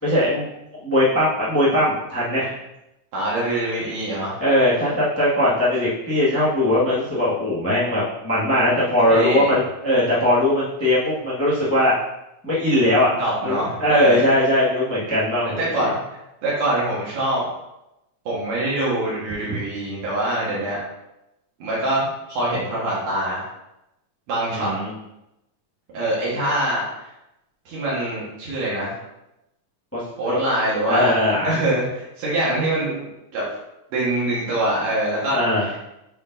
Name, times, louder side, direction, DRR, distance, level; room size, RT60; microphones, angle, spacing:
voice 1, 0.0-2.6 4.4-12.0 12.4-13.1 13.4-15.9 24.5-24.9 29.9-30.0 30.3-30.4 30.8-31.6 35.3-35.7, left 1 dB, 20° left, -9 dB, 0.3 m, -20 dB
voice 2, 3.1-4.4 9.1-9.5 13.2-14.3 15.6-17.4 18.3-20.8 21.6-23.4 24.3-24.7 25.9-27.1 27.7-29.0 30.2-31.1 31.4-33.1 33.3-33.5 33.9-35.4 35.6-35.7, right 1 dB, 75° right, -7 dB, 3.0 m, -24 dB
8.3 x 4.4 x 2.7 m, 0.89 s
omnidirectional pair, 3.7 m